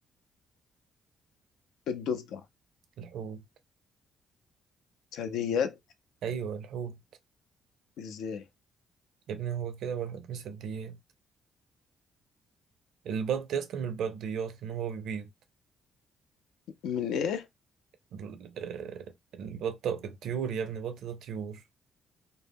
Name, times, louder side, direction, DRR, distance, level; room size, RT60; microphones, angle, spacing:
voice 1, 1.9-2.4 5.1-5.8 8.0-8.4 16.8-17.5, left 7 dB, 85° left, 0.4 m, -31 dB
voice 2, 3.0-3.4 6.2-7.0 9.3-11.0 13.0-15.3 18.1-21.6, right 7 dB, 75° right, 0.5 m, -35 dB
2.1 x 2.0 x 3.4 m
cardioid pair, 90°, 0 cm